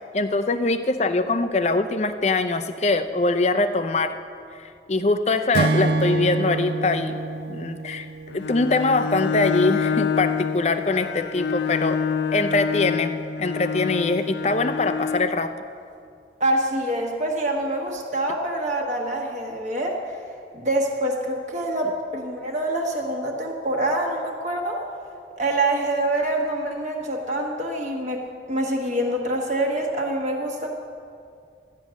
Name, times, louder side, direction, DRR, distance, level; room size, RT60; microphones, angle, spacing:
voice 1, 0.1-4.1 4.6-7.2 7.5-8.1 8.3-12.0 12.3-13.1 13.4-15.5, left 3 dB, 40° left, 9 dB, 0.6 m, -23 dB
Acoustic guitar / Strum, 5.5-9.0, right 3 dB, 65° right, 0.4 m, -26 dB
Bowed string instrument, 8.3-15.4, left 6 dB, 85° left, 0.5 m, -27 dB
voice 2, 16.4-20.2 20.5-24.8 25.4-28.2 28.5-30.7, right 1 dB, 40° right, 0 dB, 1.4 m, -25 dB
13.0 x 9.4 x 6.3 m, 2.4 s
head